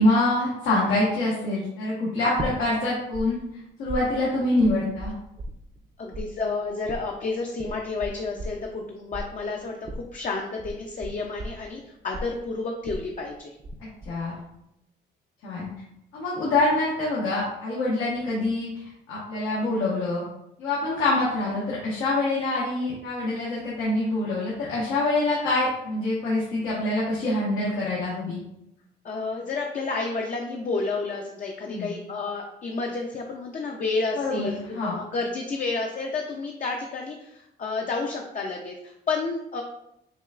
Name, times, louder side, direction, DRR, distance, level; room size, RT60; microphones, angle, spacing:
voice 1, 0.0-3.4 3.8-5.1 14.1-14.4 15.4-15.7 16.1-18.7 19.1-20.2 20.6-28.4 31.7-32.0 34.2-34.9, left 2 dB, 85° left, -7 dB, 1.2 m, -25 dB
sound 1, 2.4-3.2 3.5-5.9 6.1-13.7 14.0-14.5, right 1 dB, 30° right, 0.6 m, -36 dB
voice 2, 6.0-13.5 29.0-39.6, left 3 dB, 40° left, 0 dB, 0.5 m, -30 dB
6.1 x 2.2 x 2.4 m, 0.82 s
cardioid pair, 90°, 20 cm